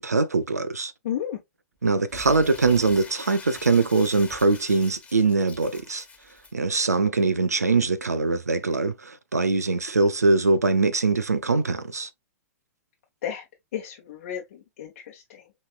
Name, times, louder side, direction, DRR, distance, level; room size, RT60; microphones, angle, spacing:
voice 1, 0.0-0.9 1.8-6.0 6.5-12.1, right 3 dB, 85° right, 0.5 m, -22 dB
voice 2, 1.0-1.4 13.2-13.4 13.7-15.5, left 10 dB, 55° left, 1.0 m, -33 dB
Crumpling crinkling, 2.1-6.5, left 4 dB, 15° left, 1.0 m, -44 dB
5.4 x 3.2 x 2.2 m
figure-of-eight pair, 105°, 8 cm